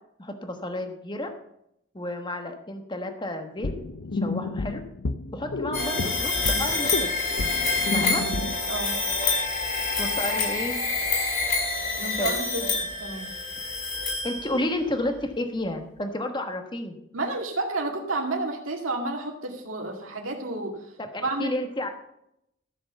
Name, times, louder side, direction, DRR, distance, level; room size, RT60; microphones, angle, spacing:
voice 1, 0.2-1.3 1.9-3.7 4.2-4.8 5.3-6.3 6.6-7.1 7.9-8.2 10.0-10.8 12.1-12.3 14.2-17.0 21.1-21.9, left 1 dB, 20° left, 5 dB, 1.2 m, -31 dB
sound 1, 3.6-8.6, left 3 dB, 70° left, 0.7 m, -31 dB
sound 2, 5.7-14.8, left 3 dB, 50° left, 5.3 m, -27 dB
voice 2, 12.0-13.3 17.1-20.9 21.2-21.6, right 2 dB, 85° right, 0 dB, 2.1 m, -31 dB
14.0 x 7.0 x 6.9 m, 0.78 s
head